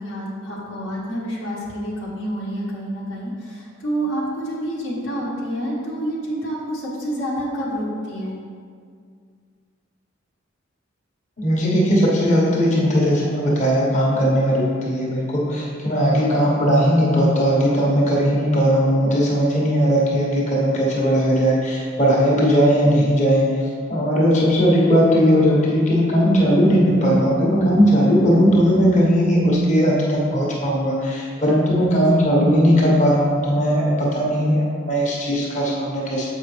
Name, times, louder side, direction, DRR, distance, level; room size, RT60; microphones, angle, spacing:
voice 1, 0.0-8.3 32.0-32.4, right 1 dB, 75° left, -5 dB, 1.3 m, -28 dB
voice 2, 11.4-23.6 23.9-36.3, equal, 40° left, -5 dB, 1.1 m, -18 dB
7.3 x 5.0 x 3.3 m, 2.1 s
head